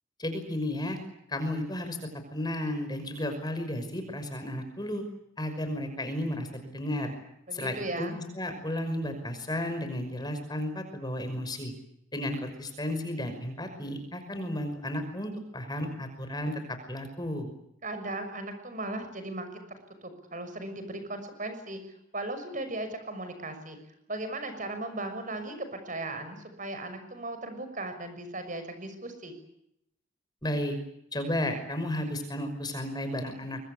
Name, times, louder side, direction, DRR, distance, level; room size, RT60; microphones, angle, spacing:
voice 1, 0.2-1.0 1.3-2.0 2.3-5.0 5.4-7.1 7.5-11.7 12.1-17.5 30.4-30.7 31.1-33.6, left 1 dB, 20° left, 8 dB, 5.6 m, -33 dB
voice 2, 7.5-8.2 17.8-19.6 20.0-21.8 22.1-23.8 24.1-29.3, right 2 dB, 40° right, 8 dB, 6.3 m, -37 dB
25.5 x 24.0 x 8.6 m, 0.78 s
head